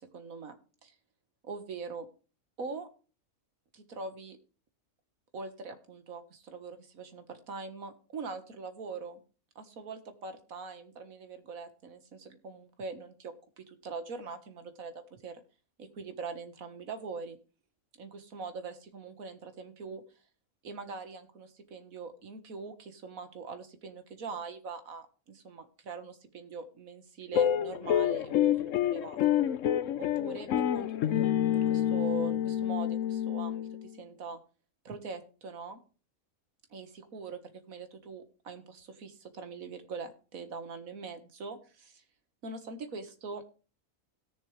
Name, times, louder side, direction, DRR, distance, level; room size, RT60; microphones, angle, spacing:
voice 1, 0.1-0.6 0.8-1.0 1.4-2.1 2.6-2.9 3.7-4.4 5.3-9.2 9.6-15.4 15.8-17.4 18.0-20.0 20.6-29.4 30.0-34.4 34.9-35.8 36.7-37.4 37.7-42.0 42.4-43.4, right 4 dB, 85° right, 8 dB, 1.9 m, -42 dB
sound 1, 27.3-33.9, left 10 dB, 70° left, 1.0 m, -28 dB
17.0 x 6.9 x 3.2 m, 0.36 s
omnidirectional pair, 1.4 m